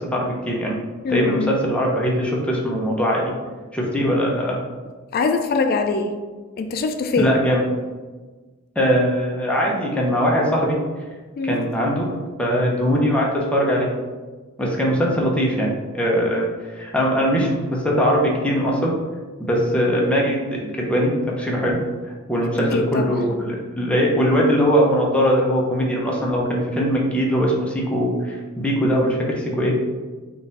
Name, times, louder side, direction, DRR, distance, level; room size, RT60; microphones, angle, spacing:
voice 1, 0.1-0.7 1.1-3.3 3.7-4.6 7.2-7.6 8.8-10.8 11.4-12.1 12.4-13.9 14.6-16.5 16.7-18.9 19.4-21.8 22.3-29.7, equal, 5° left, -3 dB, 0.7 m, -21 dB
voice 2, 1.0-1.6 5.1-6.1 6.6-7.3 11.4-11.6 22.5-23.2, left 3 dB, 45° left, 5 dB, 0.3 m, -23 dB
3.9 x 2.5 x 4.0 m, 1.3 s
head